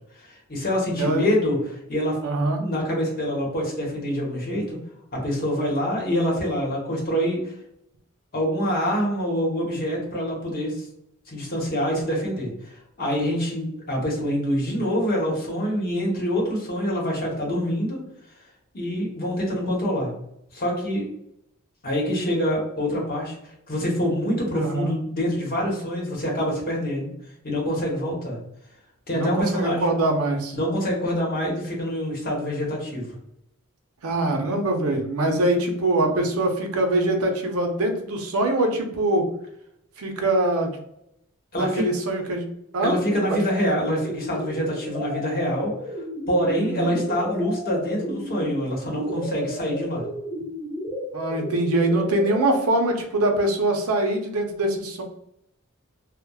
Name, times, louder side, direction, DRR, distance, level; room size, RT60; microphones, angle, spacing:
voice 1, 0.5-2.2 2.6-4.8 5.1-7.5 8.3-10.7 11.3-18.0 18.7-20.1 20.5-21.0 21.8-23.3 23.7-27.1 27.4-28.4 29.1-29.9 30.5-33.1 41.5-41.8 42.8-45.7 46.3-50.0, equal, 45° left, -3 dB, 0.8 m, -25 dB
voice 2, 2.2-2.6 24.5-24.9 29.1-30.6 34.0-39.2 40.0-40.7 41.6-42.4 42.7-42.9 43.3-43.4 46.6-47.0 51.1-55.0, right 2 dB, 85° right, 3 dB, 0.6 m, -23 dB
sound 1, 43.0-52.6, equal, 10° right, 0.4 m, -34 dB
2.9 x 2.0 x 2.2 m, 0.76 s
head